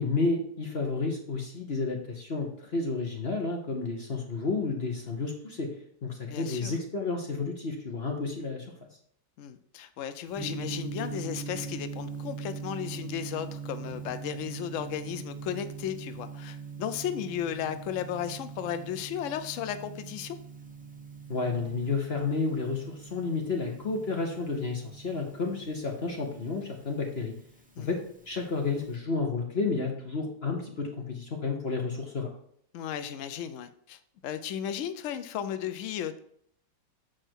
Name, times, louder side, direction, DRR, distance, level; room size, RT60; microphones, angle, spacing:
voice 1, 0.0-5.7 6.0-8.6 21.3-27.3 27.8-28.0 28.3-32.3, left 4 dB, 40° left, 1 dB, 1.1 m, -31 dB
voice 2, 6.3-6.7 9.4-20.4 27.8-27.9 32.7-36.2, left 9 dB, 90° left, 11 dB, 0.6 m, -35 dB
Gong, 10.3-28.9, right 5 dB, 10° right, 0.5 m, -42 dB
7.4 x 4.8 x 4.6 m, 0.66 s
omnidirectional pair, 2.0 m